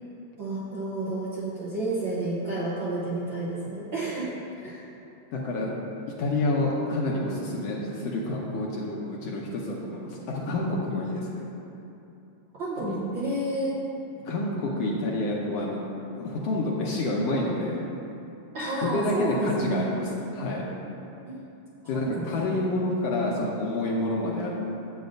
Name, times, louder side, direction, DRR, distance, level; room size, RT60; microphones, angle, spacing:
voice 1, 0.4-4.3 4.6-4.8 12.6-13.8 18.5-19.9 21.2-21.5 21.8-22.4, right 2 dB, 60° right, -8 dB, 1.2 m, -31 dB
voice 2, 5.3-5.7 6.2-11.4 12.8-13.0 14.2-15.8 16.1-17.8 18.8-20.6 21.9-24.5, left 2 dB, 70° left, -3 dB, 1.7 m, -28 dB
11.5 x 8.0 x 2.6 m, 2.8 s
omnidirectional pair, 3.4 m